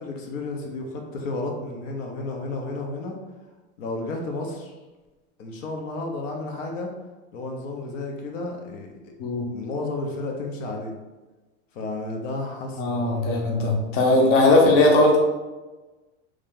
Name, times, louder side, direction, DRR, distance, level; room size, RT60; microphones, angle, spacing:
voice 1, 0.0-3.2 3.8-4.7 5.4-6.9 7.3-9.1 9.5-11.0 11.7-13.7 14.1-14.5, left 2 dB, 90° left, 1 dB, 0.9 m, -32 dB
voice 2, 12.8-15.2, left 2 dB, 50° left, 0 dB, 0.8 m, -19 dB
3.2 x 2.7 x 3.7 m, 1.2 s
supercardioid pair, 165°, 37 cm